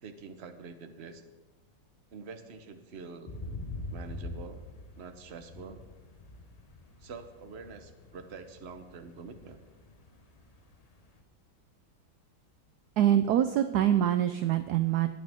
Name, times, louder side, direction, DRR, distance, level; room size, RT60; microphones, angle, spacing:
voice 1, 0.0-1.2 2.1-3.3 3.9-4.6 5.0-5.8 7.0-9.6, right 4 dB, 45° right, 8 dB, 0.9 m, -46 dB
sound 1, 3.3-11.2, left 2 dB, 40° left, 0.5 m, -44 dB
voice 2, 13.0-15.1, right 11 dB, 75° right, 10 dB, 0.9 m, -25 dB
20.5 x 8.7 x 3.6 m, 1.2 s
omnidirectional pair, 2.2 m